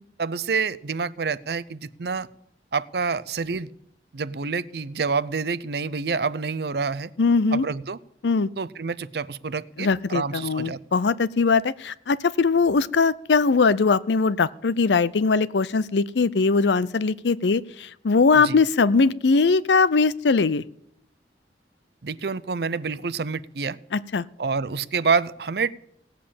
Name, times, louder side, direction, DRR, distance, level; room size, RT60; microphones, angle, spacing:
voice 1, 0.2-2.3 2.7-3.7 4.1-7.1 7.5-8.0 8.6-10.8 18.3-18.6 22.0-23.8 24.4-25.7, right 5 dB, 65° right, 18 dB, 0.6 m, -27 dB
voice 2, 7.2-7.7 8.2-8.5 9.8-20.6 23.9-24.3, left 4 dB, 80° left, 19 dB, 0.6 m, -21 dB
17.5 x 7.6 x 8.6 m, 0.73 s
head